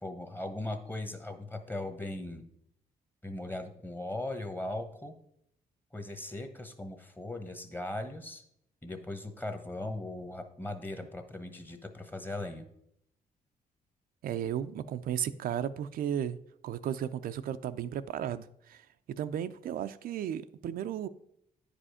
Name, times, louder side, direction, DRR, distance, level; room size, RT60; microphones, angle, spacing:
voice 1, 0.0-2.5 3.2-5.1 5.9-8.4 8.8-12.6, left 2 dB, 15° left, 1.1 m, -39 dB
voice 2, 14.2-16.4 16.6-18.8 19.2-21.1, right 10 dB, 75° right, 0.4 m, -34 dB
9.8 x 5.0 x 4.9 m
cardioid pair, 105°, 15 cm